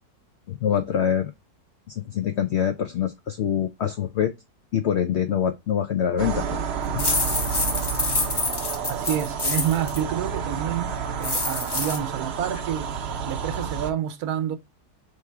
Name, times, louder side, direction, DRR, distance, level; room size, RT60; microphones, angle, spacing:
voice 1, 0.5-1.3 1.9-4.4 4.7-6.6 6.9-7.1, left 9 dB, 75° left, 0.6 m, -25 dB
sound 1, 6.2-13.9, right 6 dB, 55° right, 0.7 m, -30 dB
sound 2, 7.0-10.0 11.2-12.0, left 2 dB, 30° left, 0.5 m, -26 dB
voice 2, 8.9-12.9 13.2-14.6, right 10 dB, 75° right, 1.1 m, -28 dB
3.5 x 3.1 x 4.4 m
omnidirectional pair, 1.7 m